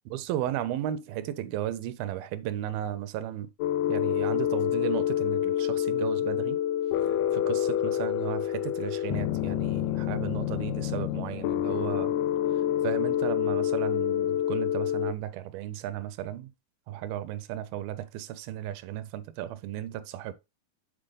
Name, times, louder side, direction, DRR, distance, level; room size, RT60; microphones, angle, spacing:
voice 1, 0.1-3.5 3.9-6.6 7.1-12.2 12.5-16.5 16.9-20.3, right 12 dB, 80° right, 2.2 m, -35 dB
sound 1, 3.6-15.1, left 11 dB, 85° left, 2.5 m, -27 dB
7.7 x 4.3 x 3.7 m
omnidirectional pair, 4.5 m